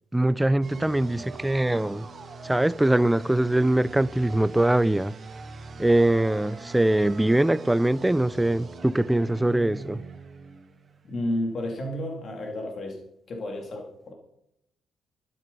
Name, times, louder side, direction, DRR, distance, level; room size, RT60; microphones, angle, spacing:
voice 1, 0.1-2.1 2.4-5.1 5.8-10.0, right 1 dB, 10° right, 0.5 m, -22 dB
sound 1, 0.6-11.2, right 3 dB, 40° right, 2.3 m, -42 dB
voice 2, 11.0-13.0 13.3-14.1, left 1 dB, 50° left, 2.7 m, -31 dB
13.0 x 12.5 x 5.4 m
cardioid pair, 90°, 0 cm